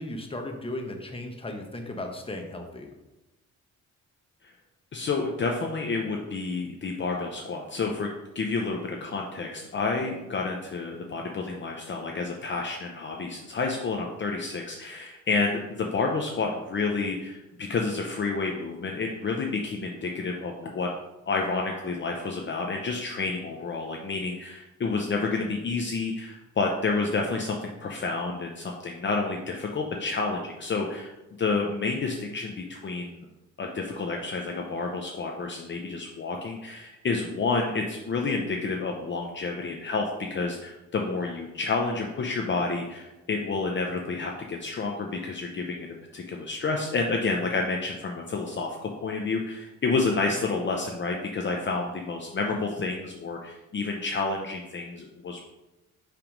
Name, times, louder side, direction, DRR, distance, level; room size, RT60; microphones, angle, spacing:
voice 1, 0.0-2.9, left 1 dB, 20° left, 3 dB, 1.0 m, -36 dB
voice 2, 4.9-20.9 21.3-31.1 31.4-33.3 33.6-45.9 46.1-55.4, left 4 dB, 40° left, 1 dB, 0.7 m, -29 dB
5.8 x 3.4 x 5.3 m, 1.0 s
cardioid pair, 90°, 30 cm